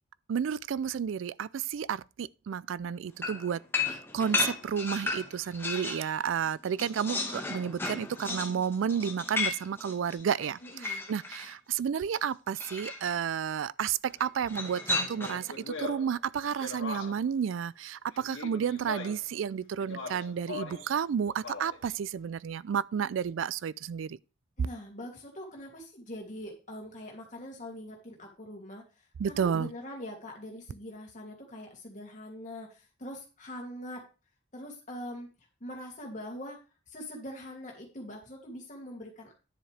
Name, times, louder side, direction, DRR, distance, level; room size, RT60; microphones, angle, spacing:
voice 1, 0.3-24.2 29.2-29.7, right 7 dB, 80° right, 0.3 m, -31 dB
sound 1, 3.2-6.1 6.5-11.5 12.6-13.2 14.5-15.5, left 3 dB, 10° left, 1.3 m, -34 dB
voice 2, 10.6-11.0 24.6-28.8 29.3-34.0 34.5-35.3 35.6-36.6 36.9-39.3, left 1 dB, 40° left, 2.7 m, -43 dB
Speech, 15.2-17.3 18.1-19.3 19.8-20.9 21.3-21.9, left 3 dB, 85° left, 2.1 m, -41 dB
10.5 x 7.1 x 3.4 m
head